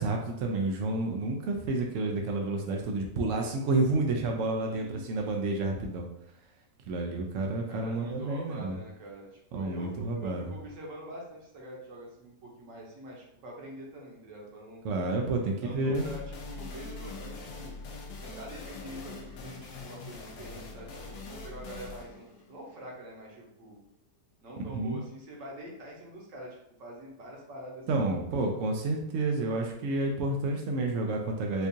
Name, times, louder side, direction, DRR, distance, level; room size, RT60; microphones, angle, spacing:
voice 1, 0.0-6.1 6.9-8.8 9.5-10.5 14.8-16.1 24.7-25.0 27.9-31.7, right 2 dB, 75° right, 2 dB, 0.7 m, -30 dB
voice 2, 4.6-5.4 7.7-14.8 15.6-17.7 18.2-23.8 24.4-28.4, right 1 dB, 55° right, -2 dB, 1.2 m, -45 dB
sound 1, 15.9-23.4, left 3 dB, 75° left, 1.2 m, -43 dB
4.4 x 2.4 x 2.7 m, 0.77 s
omnidirectional pair, 1.8 m